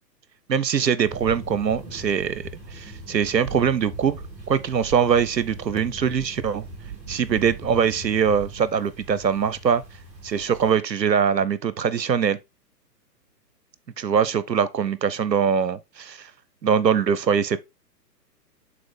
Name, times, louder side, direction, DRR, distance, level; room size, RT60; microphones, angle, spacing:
voice 1, 0.5-4.2 4.5-6.6 7.1-9.8 10.2-12.4 14.0-16.3 16.6-17.6, right 7 dB, 80° right, 0.8 m, -22 dB
sound 1, 1.0-10.7, right 2 dB, 15° right, 2.2 m, -40 dB
7.7 x 4.0 x 3.7 m
figure-of-eight pair, 120°, 50 cm